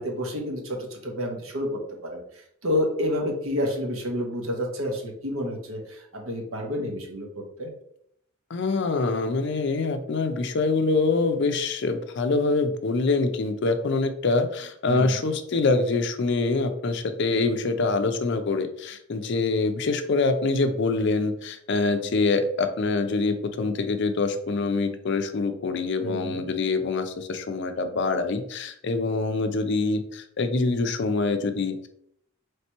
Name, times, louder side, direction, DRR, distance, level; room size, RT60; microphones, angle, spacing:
voice 1, 0.0-7.7 14.8-15.3 26.0-26.4, left 1 dB, 75° right, 1 dB, 1.0 m, -30 dB
voice 2, 8.5-31.9, left 3 dB, 55° left, 8 dB, 0.4 m, -25 dB
3.3 x 2.9 x 4.4 m, 0.72 s
head